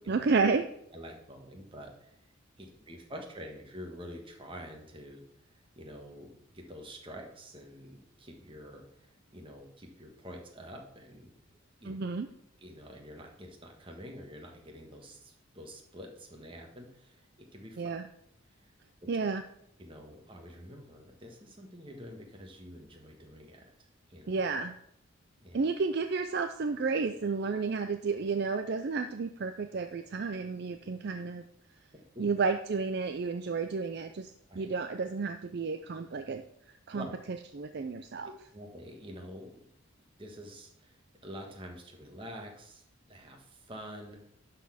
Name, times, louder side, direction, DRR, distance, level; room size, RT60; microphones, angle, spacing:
voice 1, 0.1-0.7 11.8-12.3 17.8-18.0 19.1-19.4 24.3-24.7 25.5-31.4 32.2-36.4 36.9-37.1 37.5-38.3, right 4 dB, 50° right, 8 dB, 0.4 m, -31 dB
voice 2, 0.9-2.1 2.6-11.3 11.8-12.0 12.6-17.8 18.5-18.7 19.0-19.1 19.8-23.6 24.1-24.4 25.4-25.6 31.9-32.3 34.5-34.6 36.9-37.1 38.2-39.7 40.2-41.0 41.2-44.2, equal, 25° right, 1 dB, 1.4 m, -47 dB
11.5 x 4.2 x 5.7 m, 0.73 s
head